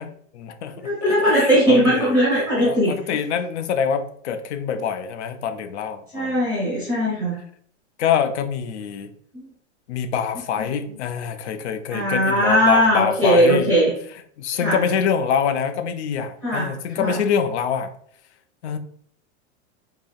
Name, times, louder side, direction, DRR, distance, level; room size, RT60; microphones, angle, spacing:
voice 1, 0.0-2.2 2.6-6.5 8.0-9.1 9.9-13.7 14.4-18.0 18.6-18.8, left 7 dB, 70° left, 9 dB, 0.6 m, -25 dB
voice 2, 0.8-3.2 6.1-7.4 10.6-10.7 11.9-13.9 14.6-14.8 16.4-17.2, equal, 10° left, -10 dB, 0.8 m, -19 dB
4.8 x 2.8 x 2.3 m, 0.62 s
supercardioid pair, 175°, 36 cm